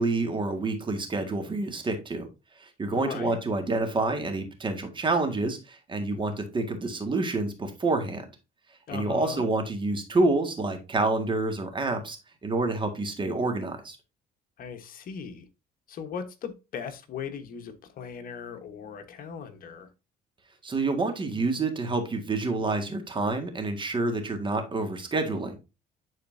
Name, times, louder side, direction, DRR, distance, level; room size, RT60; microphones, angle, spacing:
voice 1, 0.0-2.3 2.6-8.3 8.9-14.0 20.6-25.5, right 3 dB, 30° right, 6 dB, 1.8 m, -28 dB
voice 2, 2.9-3.4 8.9-9.5 14.6-15.5 15.9-19.9, left 7 dB, 55° left, 8 dB, 1.2 m, -38 dB
10.5 x 4.3 x 2.6 m, 0.27 s
cardioid pair, 110°, 17 cm